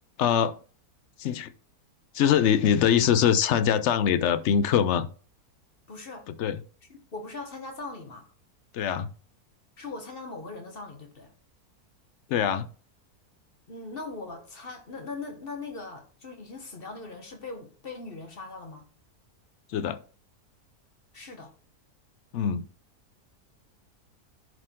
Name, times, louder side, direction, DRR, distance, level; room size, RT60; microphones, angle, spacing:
voice 1, 0.2-0.6 1.2-1.5 2.1-5.1 6.4-6.6 8.7-9.1 12.3-12.7 19.7-20.0 22.3-22.6, left 8 dB, 65° left, 0.7 m, -23 dB
voice 2, 5.9-6.3 6.9-8.3 9.8-11.3 13.7-18.9 21.1-21.5, left 3 dB, 40° left, 1.2 m, -40 dB
11.0 x 4.4 x 3.7 m
omnidirectional pair, 1.6 m